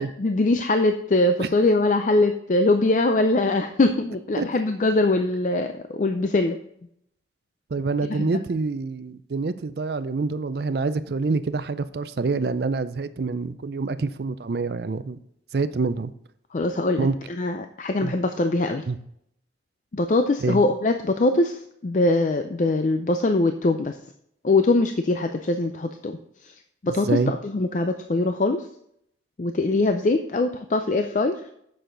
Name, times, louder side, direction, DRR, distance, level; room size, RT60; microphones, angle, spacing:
voice 1, 0.0-6.6 8.1-8.4 16.5-18.8 19.9-24.0 24.4-26.5 26.8-28.7 29.4-31.4, left 2 dB, 40° left, 6 dB, 0.4 m, -22 dB
voice 2, 7.7-15.2 15.5-16.1 17.0-17.1 18.0-18.1 18.9-19.0 20.4-20.6 27.0-27.3, right 4 dB, 55° right, 13 dB, 0.4 m, -26 dB
7.9 x 6.4 x 3.8 m, 0.73 s
head